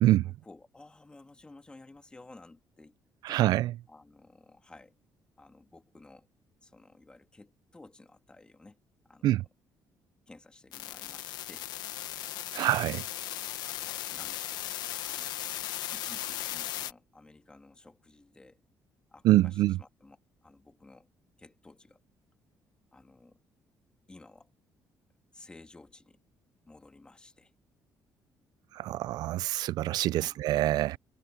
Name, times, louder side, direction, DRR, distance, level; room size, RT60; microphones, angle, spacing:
voice 1, 0.2-3.0 3.3-3.4 3.9-4.9 5.4-6.3 6.6-8.8 9.0-9.5 10.3-11.7 13.7-14.7 15.0-18.6 19.1-21.1 21.4-22.0 22.9-23.4 24.1-24.5 25.3-26.2 26.7-27.5 30.1-30.4, left 2 dB, 15° left, 2.3 m, -54 dB
voice 2, 3.2-3.8 9.2-9.4 12.5-13.0 19.2-19.8 28.7-31.0, right 15 dB, 75° right, 0.4 m, -25 dB
sound 1, 10.7-16.9, left 13 dB, 90° left, 1.3 m, -37 dB
cardioid pair, 150°, 7 cm